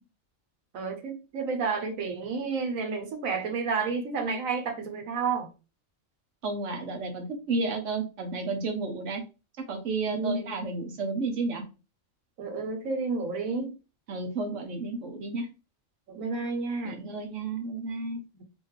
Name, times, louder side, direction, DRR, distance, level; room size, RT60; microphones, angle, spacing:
voice 1, 0.7-5.5 10.1-10.5 12.4-13.7 16.1-17.0 18.3-18.4, right 4 dB, 85° right, 1.3 m, -31 dB
voice 2, 6.4-9.2 9.6-11.6 14.1-15.5 16.8-18.2, right 3 dB, 65° right, 1.1 m, -32 dB
4.0 x 2.6 x 3.2 m
omnidirectional pair, 1.4 m